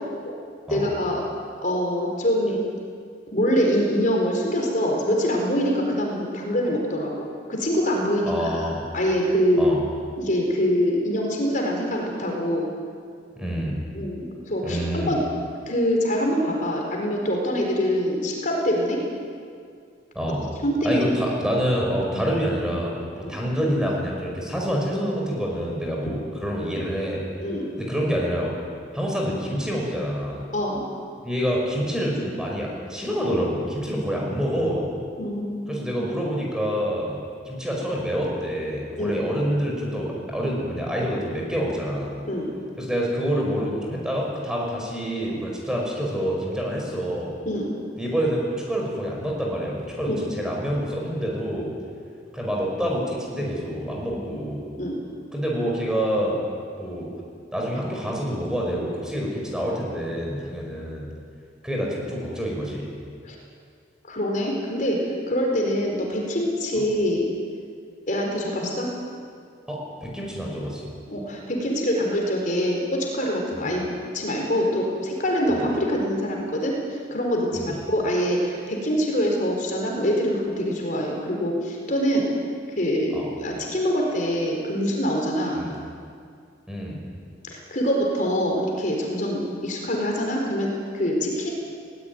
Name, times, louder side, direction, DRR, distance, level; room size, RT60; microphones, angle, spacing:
voice 1, 0.7-1.2 1.6-2.6 3.3-8.6 8.9-9.7 10.2-12.7 13.9-15.2 15.7-19.0 20.6-21.0 23.2-23.3 27.4-27.6 30.5-30.8 35.2-35.9 39.0-39.2 42.3-42.5 47.4-47.7 50.1-50.2 54.1-54.4 54.8-55.0 63.2-63.4 64.1-67.3 68.1-68.9 71.1-73.8 74.1-76.8 77.1-82.3 82.8-85.6 87.4-91.5, equal, 45° left, 0 dB, 4.6 m, -24 dB
voice 2, 8.3-8.8 9.6-9.8 13.4-13.8 14.6-15.1 20.1-20.4 20.8-27.2 27.8-28.5 28.9-30.4 31.2-34.9 35.7-37.2 37.5-42.1 42.8-47.4 48.0-51.7 52.3-54.6 55.3-56.4 56.7-57.1 57.5-61.1 61.6-62.9 69.7-70.9 73.5-73.7 75.5-75.6 77.5-77.7 83.1-83.3 85.6-85.7 86.7-87.0, equal, 5° right, -2 dB, 5.7 m, -27 dB
22.0 x 18.5 x 9.6 m, 2.2 s
head